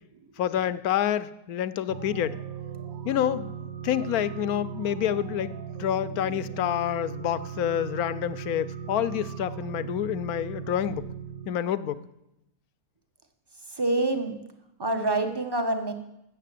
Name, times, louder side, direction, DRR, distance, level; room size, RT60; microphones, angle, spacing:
voice 1, 0.4-2.4 3.1-3.5 3.8-5.5 5.8-11.0 11.5-12.0, left 10 dB, 70° left, 15 dB, 1.1 m, -28 dB
sound 1, 1.9-11.5, right 8 dB, 65° right, 1.2 m, -38 dB
voice 2, 13.7-14.4 14.8-15.9, right 2 dB, 15° right, 7 dB, 1.0 m, -27 dB
12.5 x 7.9 x 8.3 m, 0.88 s
omnidirectional pair, 1.7 m